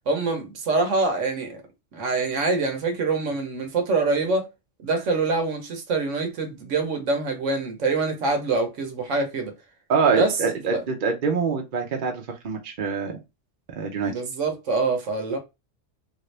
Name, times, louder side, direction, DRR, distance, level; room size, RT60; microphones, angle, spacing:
voice 1, 0.1-1.6 1.9-4.4 4.8-9.5 10.1-10.3 10.7-10.8 14.0-15.4, right 3 dB, 80° right, 1.2 m, -25 dB
voice 2, 9.9-13.2 13.8-14.1, right 5 dB, 50° right, 0.8 m, -25 dB
3.6 x 2.6 x 3.2 m
omnidirectional pair, 1.3 m